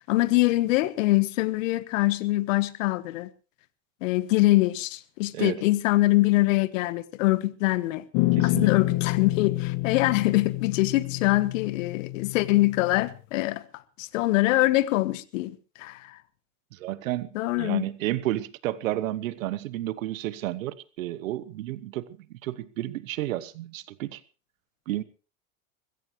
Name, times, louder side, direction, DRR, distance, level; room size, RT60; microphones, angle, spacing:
voice 1, 0.1-3.3 4.0-8.0 8.4-13.6 14.0-16.2 17.3-17.9, left 18 dB, 80° left, 1.2 m, -24 dB
sound 1, 8.1-13.2, left 20 dB, 60° left, 1.4 m, -28 dB
voice 2, 8.3-8.7 16.7-17.3 17.6-24.2 24.9-25.0, right 14 dB, 85° right, 1.0 m, -31 dB
21.0 x 16.0 x 3.1 m
supercardioid pair, 105°, 39 cm